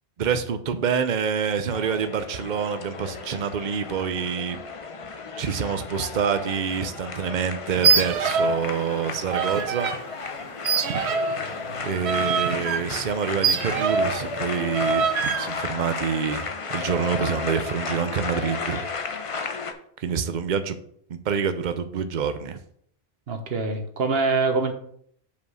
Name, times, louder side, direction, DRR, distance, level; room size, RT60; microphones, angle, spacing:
voice 1, 0.2-4.6 5.4-9.9 11.8-15.0 15.4-18.9 20.0-20.8 21.1-22.6, right 7 dB, 50° right, 10 dB, 0.8 m, -27 dB
sound 1, 1.7-19.7, left 4 dB, 35° left, 0.6 m, -33 dB
Swing Horn, 7.8-8.7 8.9-10.0 10.6-14.2 14.7-15.5, right 6 dB, 85° right, 0.9 m, -24 dB
voice 2, 23.3-24.7, right 3 dB, 65° right, 5 dB, 1.3 m, -24 dB
5.3 x 5.2 x 6.3 m, 0.65 s
omnidirectional pair, 1.1 m